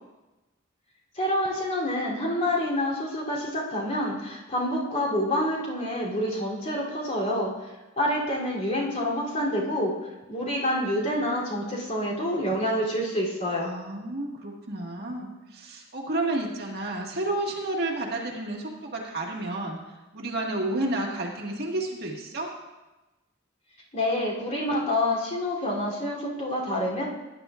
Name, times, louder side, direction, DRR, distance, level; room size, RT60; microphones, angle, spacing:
voice 1, 1.1-7.5 8.0-9.9 10.3-13.7 23.9-27.0, left 1 dB, 35° left, -4 dB, 3.1 m, -27 dB
voice 2, 13.6-19.8 20.1-22.5, right 2 dB, 50° right, -1 dB, 1.8 m, -31 dB
19.0 x 10.5 x 2.5 m, 1.1 s
head